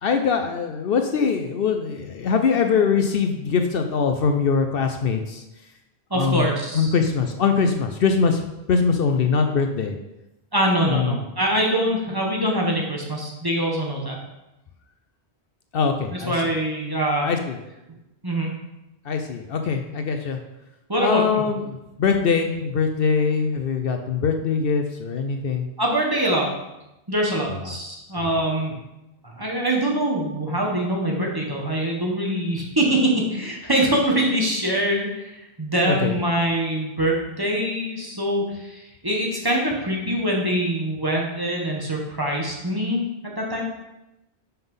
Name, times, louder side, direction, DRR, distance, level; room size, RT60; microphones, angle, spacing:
voice 1, 0.0-5.4 6.1-6.5 6.7-8.4 8.7-10.0 10.9-11.2 15.7-16.5 17.2-17.6 19.0-20.4 21.0-25.7 27.5-27.8 28.2-28.3 35.9-36.2, left 5 dB, 65° left, 5 dB, 0.8 m, -22 dB
voice 2, 6.1-6.9 10.5-14.2 16.3-17.3 18.2-18.5 20.9-21.4 25.8-26.5 27.1-28.7 29.2-43.6, right 1 dB, 20° right, -2 dB, 1.4 m, -24 dB
5.7 x 5.6 x 5.5 m, 0.94 s
omnidirectional pair, 1.1 m